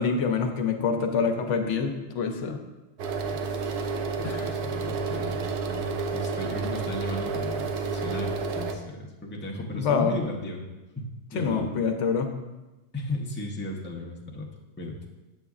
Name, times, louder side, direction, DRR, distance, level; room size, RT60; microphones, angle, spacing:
voice 1, 0.0-2.6 4.2-4.6 9.7-10.2 11.3-12.3, left 5 dB, 85° left, 5 dB, 1.0 m, -26 dB
sound 1, 3.0-8.7, right 4 dB, 75° right, 0.9 m, -30 dB
voice 2, 4.2-10.6 11.0-11.7 12.9-14.5 14.8-15.0, left 1 dB, 15° left, -1 dB, 0.6 m, -35 dB
7.5 x 7.1 x 2.4 m, 1.1 s
omnidirectional pair, 1.2 m